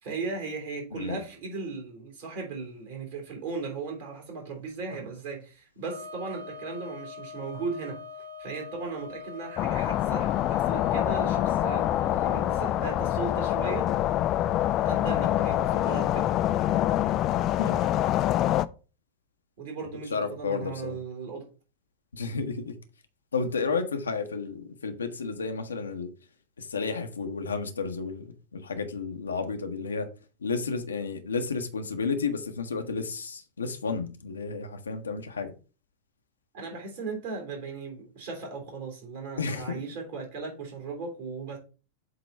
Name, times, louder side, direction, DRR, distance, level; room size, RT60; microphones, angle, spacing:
voice 1, 0.0-8.0 8.4-13.9 14.8-16.3 19.6-21.5 36.5-41.6, right 4 dB, 50° right, 3.0 m, -37 dB
Wind instrument woodwind instrument, 5.8-12.6, left 4 dB, 80° right, 2.7 m, -43 dB
sound 1, 9.6-18.6, left 13 dB, 35° left, 0.3 m, -25 dB
voice 2, 20.1-21.0 22.1-22.7 23.3-26.1 26.6-30.1 30.4-35.5 39.4-39.8, left 4 dB, 70° left, 1.0 m, -32 dB
7.8 x 3.0 x 5.4 m
figure-of-eight pair, 90°, 0 cm